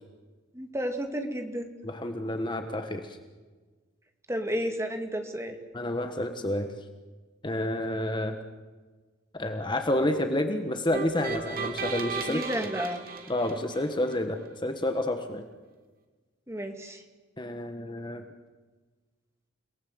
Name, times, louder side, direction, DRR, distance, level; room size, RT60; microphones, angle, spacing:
voice 1, 0.5-1.7 4.3-5.6 12.3-13.1 16.5-17.0, equal, 15° right, 5 dB, 2.3 m, -32 dB
voice 2, 1.8-3.2 5.7-6.7 7.4-8.3 9.3-12.4 13.3-15.4 17.4-18.2, left 1 dB, 20° left, 6 dB, 1.4 m, -29 dB
sound 1, 10.9-14.2, right 5 dB, 45° right, 3.1 m, -35 dB
29.5 x 19.0 x 8.0 m, 1.4 s
head